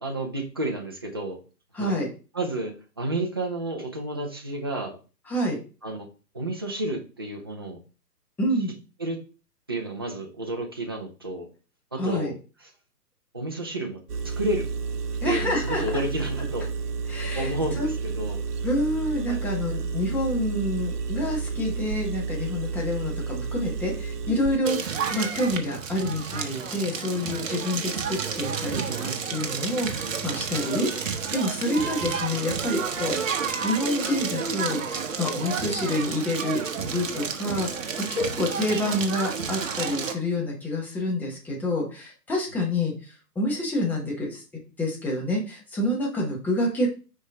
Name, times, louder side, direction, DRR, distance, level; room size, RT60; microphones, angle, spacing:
voice 1, 0.0-1.4 1.8-1.9 2.3-5.0 5.8-6.0 6.3-7.8 9.0-9.2 9.7-11.5 11.9-12.3 13.3-14.7 15.2-16.7 17.4-18.4 19.3-19.4 32.1-32.3 32.6-32.8, right 1 dB, 15° right, 1 dB, 0.5 m, -31 dB
voice 2, 1.7-2.1 5.3-5.6 8.4-8.7 12.0-12.3 15.2-16.0 17.1-17.9 18.6-33.2 33.6-44.4 44.8-47.0, left 1 dB, 5° left, -2 dB, 1.1 m, -28 dB
Engine, 14.1-24.6, right 5 dB, 65° right, 1.0 m, -31 dB
Crackle, 24.6-40.1, right 6 dB, 50° right, 1.3 m, -30 dB
6.4 x 5.2 x 3.6 m, 0.35 s
figure-of-eight pair, 140°, 50 cm